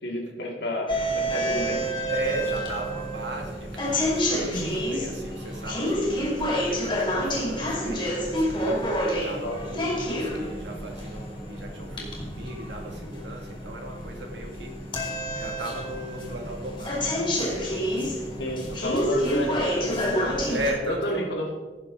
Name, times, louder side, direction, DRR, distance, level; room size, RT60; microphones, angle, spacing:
voice 1, 0.0-1.8 4.5-4.7 9.4-9.6 18.4-20.3 21.0-21.5, equal, 75° left, 0 dB, 2.3 m, -31 dB
sound 1, 0.9-20.7, equal, 25° left, 2.6 m, -28 dB
voice 2, 2.1-6.4 6.7-14.8 15.0-18.1 18.4-18.8 20.5-21.3, right 1 dB, 85° right, 1 dB, 2.2 m, -37 dB
16.0 x 6.7 x 3.9 m, 1.3 s
head